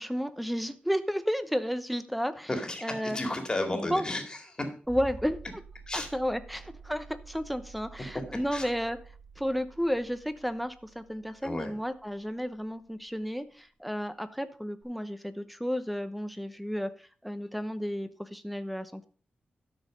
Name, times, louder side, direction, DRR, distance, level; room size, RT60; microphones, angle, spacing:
voice 1, 0.0-2.5 2.8-3.2 3.9-4.0 4.9-5.4 5.9-9.0 9.4-19.1, equal, ahead, 11 dB, 0.9 m, -32 dB
voice 2, 2.5-4.7 5.9-6.1 8.0-8.2 8.5-8.7 11.4-11.7, left 2 dB, 25° left, 4 dB, 2.3 m, -33 dB
sound 1, 4.9-13.3 14.8-14.9, right 3 dB, 20° right, 3.0 m, -49 dB
12.5 x 6.4 x 5.2 m, 0.40 s
wide cardioid pair, 120°, 3 cm